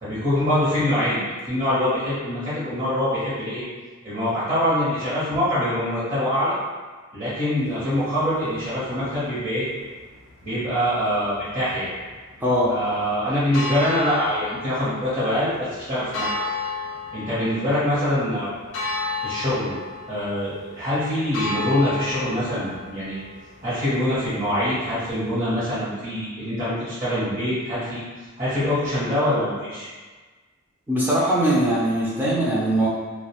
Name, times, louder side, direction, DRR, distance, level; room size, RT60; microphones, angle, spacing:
voice 1, 0.0-3.6 4.0-6.5 7.1-9.6 10.4-11.9 12.7-16.5 17.1-18.5 19.2-19.7 20.1-23.2 23.6-28.0 28.4-29.9, left 1 dB, 35° right, -13 dB, 0.8 m, -24 dB
sound 1, 7.6-25.7, left 3 dB, 70° left, 0.5 m, -35 dB
voice 2, 12.4-12.7 30.9-32.9, right 1 dB, 10° right, -8 dB, 0.4 m, -21 dB
2.4 x 2.1 x 2.8 m, 1.4 s
head